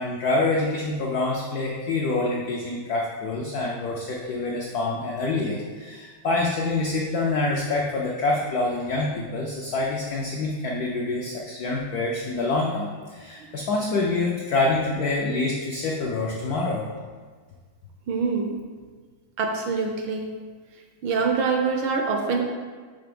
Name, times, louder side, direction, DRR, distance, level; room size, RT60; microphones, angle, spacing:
voice 1, 0.0-16.8, left 2 dB, 85° left, -2 dB, 0.8 m, -26 dB
voice 2, 18.1-18.6 19.4-20.3 21.0-22.4, right 4 dB, 75° right, 3 dB, 1.2 m, -25 dB
5.7 x 3.4 x 5.2 m, 1.5 s
omnidirectional pair, 2.4 m